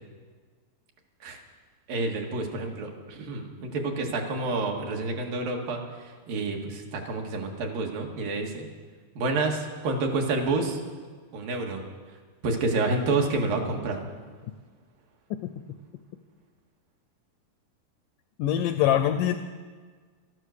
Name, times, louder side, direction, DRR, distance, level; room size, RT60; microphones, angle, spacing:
voice 1, 1.9-8.7 9.2-10.8 11.3-11.8 12.4-14.0, right 3 dB, 70° right, 1 dB, 3.3 m, -29 dB
voice 2, 18.4-19.4, left 11 dB, 85° left, 9 dB, 1.9 m, -24 dB
14.5 x 13.5 x 6.5 m, 1.5 s
omnidirectional pair, 4.3 m